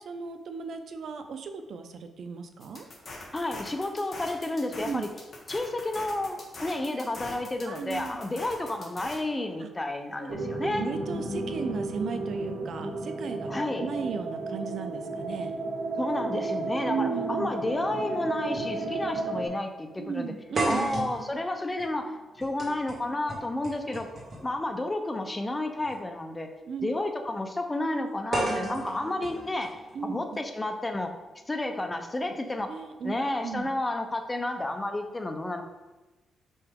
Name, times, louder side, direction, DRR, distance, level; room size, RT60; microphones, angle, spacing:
voice 1, 0.1-2.9 4.8-5.1 7.6-8.2 9.6-9.7 10.2-10.4 10.8-15.6 16.9-17.5 20.0-20.9 26.7-26.9 29.9-30.4 32.7-33.1 33.4-33.7, right 6 dB, 70° right, 7 dB, 0.6 m, -35 dB
sound 1, 2.6-9.2, left 2 dB, 45° left, 1.5 m, -43 dB
voice 2, 3.3-5.1 5.5-10.9 13.5-13.9 16.0-20.3 20.7-24.1 24.4-26.5 26.8-31.1 31.5-32.7 33.0-35.6, left 2 dB, 20° left, 6 dB, 0.7 m, -31 dB
sound 2, 10.3-19.5, right 2 dB, 85° right, 1.6 m, -33 dB
sound 3, 18.6-18.7 19.1-19.2 20.5-24.6 25.8-25.9 28.3-30.3, right 2 dB, 40° right, 2.0 m, -34 dB
5.6 x 5.4 x 3.6 m, 1.1 s
cardioid pair, 95°, 0 cm